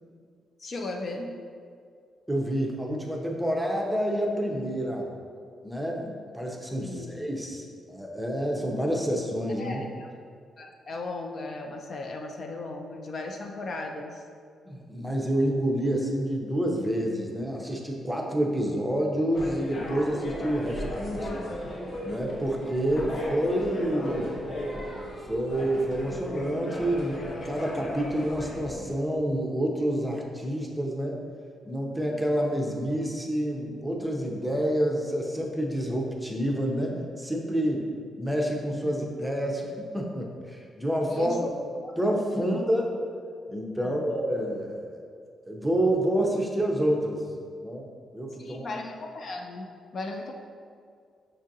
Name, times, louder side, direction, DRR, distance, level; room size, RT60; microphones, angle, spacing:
voice 1, 0.6-1.3 6.8-7.1 9.6-10.1 10.6-14.3 38.8-38.9 41.1-41.5 41.8-41.9 42.3-42.7 43.8-44.0 48.4-50.3, left 2 dB, 55° left, 2 dB, 0.3 m, -36 dB
voice 2, 2.3-5.1 5.6-9.8 14.7-21.4 22.0-24.3 25.3-31.2 31.7-37.9 38.2-41.4 42.0-42.9 43.5-44.8 45.5-47.2 47.6-47.9 48.1-48.7, equal, 5° right, -1 dB, 0.6 m, -28 dB
sound 1, 19.3-28.9, left 1 dB, 80° left, 0.8 m, -36 dB
Singing, 22.1-27.3, right 1 dB, 35° left, 0.7 m, -42 dB
6.5 x 2.4 x 2.7 m, 2.2 s
cardioid pair, 95°, 0 cm